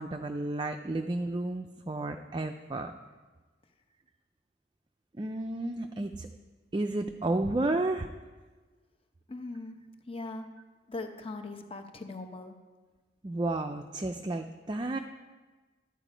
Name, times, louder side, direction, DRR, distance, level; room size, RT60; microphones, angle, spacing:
voice 1, 0.0-2.9 5.1-6.3 6.7-8.1 13.2-15.0, right 2 dB, 25° right, 5 dB, 0.4 m, -32 dB
voice 2, 9.3-9.8 10.1-10.5 10.9-12.5, left 2 dB, 30° left, 6 dB, 0.9 m, -40 dB
12.0 x 8.1 x 5.0 m, 1.3 s
head